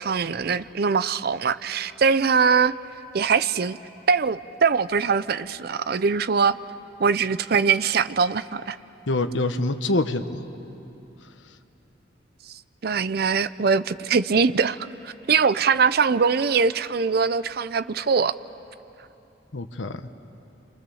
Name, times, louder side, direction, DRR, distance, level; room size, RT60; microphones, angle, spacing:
voice 1, 0.0-2.7 3.1-3.8 4.1-6.6 7.0-8.8 12.8-14.8 15.0-18.4, right 5 dB, 55° right, 0.5 m, -22 dB
voice 2, 9.1-10.4 11.2-11.3 19.5-20.1, left 2 dB, 90° left, 1.1 m, -26 dB
29.0 x 25.5 x 7.1 m
head